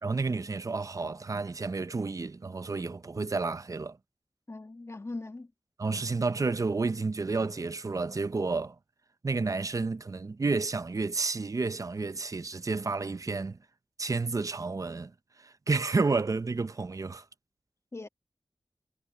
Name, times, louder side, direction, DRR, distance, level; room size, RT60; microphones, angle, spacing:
voice 1, 0.0-4.0 5.8-8.8 9.2-13.6 14.0-15.1 15.4-17.2, right 3 dB, 45° right, 0.7 m, -30 dB
voice 2, 4.5-5.5 17.9-18.1, left 2 dB, 35° left, 1.5 m, -40 dB
wide cardioid pair, 60°, 8 cm